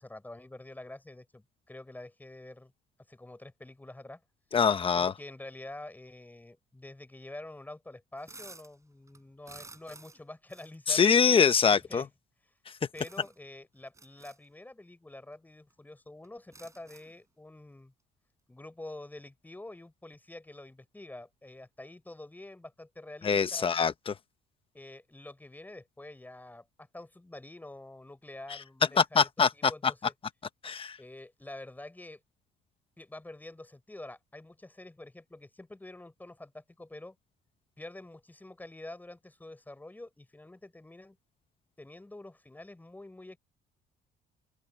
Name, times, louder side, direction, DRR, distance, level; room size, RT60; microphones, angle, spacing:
voice 1, 0.0-2.7 3.1-4.2 4.9-11.0 11.7-12.1 12.9-17.9 18.5-23.7 24.7-30.1 31.0-32.2 33.0-37.1 37.8-41.2 41.8-43.4, left 2 dB, 10° left, 4.7 m, -47 dB
voice 2, 4.5-5.1 10.9-12.0 23.2-24.1 29.0-29.7 30.6-31.0, left 6 dB, 30° left, 1.2 m, -24 dB
sound 1, 8.2-8.7 9.1-10.2 10.5-10.8 11.7-11.8 12.9-13.4 13.9-14.4 15.3-15.4 15.7-15.8 16.2-17.2, right 3 dB, 15° right, 7.2 m, -52 dB
open air
cardioid pair, 110°, 17 cm